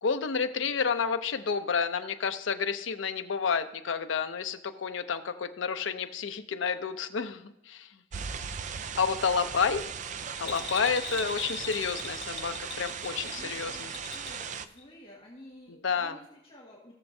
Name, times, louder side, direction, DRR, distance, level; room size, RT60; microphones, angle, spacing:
voice 1, 0.0-7.9 9.0-9.9 10.4-13.9 15.8-16.2, left 6 dB, 80° left, 8 dB, 0.6 m, -30 dB
sound 1, 8.1-14.7, right 6 dB, 40° right, 0.4 m, -38 dB
Bell, 10.4-14.5 14.8-14.9, left 5 dB, 60° left, 1.2 m, -40 dB
voice 2, 13.0-16.9, left 1 dB, 30° left, -5 dB, 1.9 m, -52 dB
17.0 x 6.9 x 2.7 m, 0.83 s
head